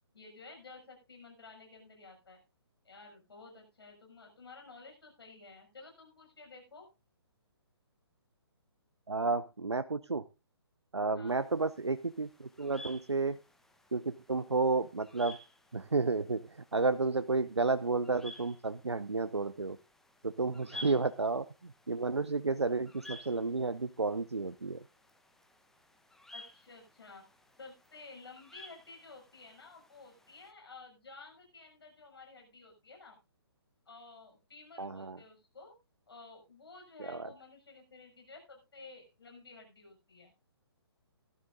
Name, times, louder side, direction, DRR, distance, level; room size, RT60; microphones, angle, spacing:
voice 1, 0.1-2.4 2.8-6.9 11.1-11.4 20.7-21.0 26.3-27.2 27.6-33.2 33.8-35.7 36.1-40.3, left 3 dB, 65° left, 2 dB, 6.6 m, -53 dB
voice 2, 9.1-10.2 10.9-13.4 13.9-15.4 15.7-19.8 20.2-24.8 34.8-35.2 37.0-37.3, right 3 dB, 80° right, 12 dB, 0.6 m, -32 dB
sound 1, 11.3-30.5, left 1 dB, ahead, 0.9 m, -54 dB
17.5 x 12.5 x 2.6 m, 0.29 s
figure-of-eight pair, 135°, 14 cm